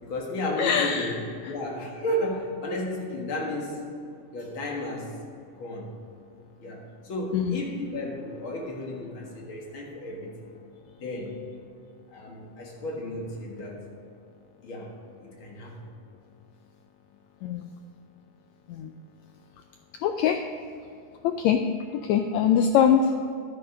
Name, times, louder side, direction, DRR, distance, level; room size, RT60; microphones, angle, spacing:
voice 1, 0.0-1.1 1.4-3.9 4.3-5.1 5.6-5.9 6.6-10.3 11.0-11.4 12.1-13.8 14.6-14.9 15.2-15.9, left 1 dB, 45° left, -1 dB, 2.2 m, -33 dB
voice 2, 0.6-1.2 1.4-1.5 7.3-7.6 17.4-17.7 18.7-18.9 20.0-20.4 21.2-21.6 21.9-23.3, left 8 dB, 85° left, 6 dB, 1.6 m, -23 dB
11.5 x 8.8 x 5.1 m, 2.5 s
omnidirectional pair, 3.7 m